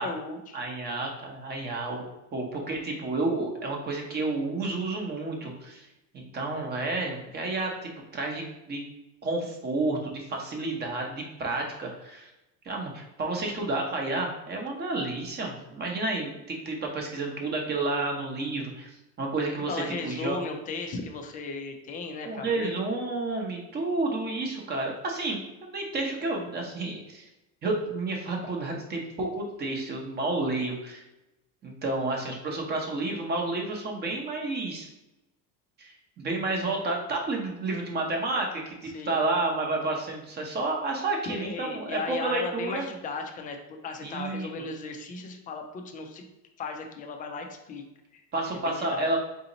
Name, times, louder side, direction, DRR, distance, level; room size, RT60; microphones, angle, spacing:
voice 1, 0.0-0.6 19.7-22.8 38.8-39.2 41.3-46.2 46.6-47.8 48.1-48.2 48.6-49.1, left 3 dB, 20° left, 4 dB, 0.3 m, -36 dB
voice 2, 0.5-2.0 2.3-5.9 6.1-8.8 9.2-12.3 12.6-18.9 19.2-19.8 20.0-20.4 22.2-27.3 27.6-31.0 31.6-34.9 35.8-42.8 44.0-44.5 48.3-49.2, right 2 dB, 25° right, 1 dB, 0.7 m, -30 dB
4.0 x 2.8 x 3.9 m, 0.94 s
cardioid pair, 160°, 40 cm